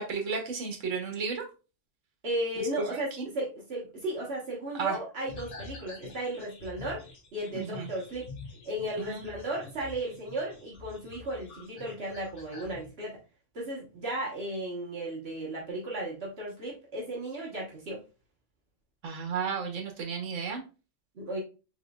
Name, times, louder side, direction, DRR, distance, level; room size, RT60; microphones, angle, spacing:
voice 1, 0.0-1.4 2.6-3.2 4.8-5.0 7.5-7.9 9.1-9.2 19.0-20.6, right 5 dB, 80° right, 2 dB, 1.3 m, -33 dB
voice 2, 2.2-7.0 7.3-8.3 8.6-13.2 13.5-18.0 21.2-21.4, right 1 dB, 55° right, -3 dB, 1.3 m, -35 dB
sound 1, 5.3-12.9, left 4 dB, 65° left, 1.4 m, -47 dB
4.2 x 3.7 x 2.3 m, 0.33 s
omnidirectional pair, 1.3 m